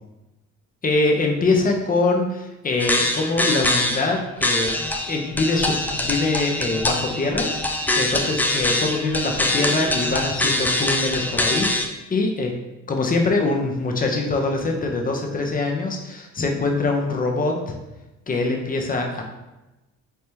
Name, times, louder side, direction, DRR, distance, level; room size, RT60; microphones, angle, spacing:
voice 1, 0.8-4.7 5.1-11.7 12.1-12.5 12.9-17.8 18.3-19.2, left 3 dB, 20° left, 2 dB, 0.8 m, -23 dB
sound 1, 2.8-4.1 4.4-11.9, left 1 dB, 5° left, 0.4 m, -24 dB
4.2 x 3.4 x 2.8 m, 1.0 s
figure-of-eight pair, 50°, 41 cm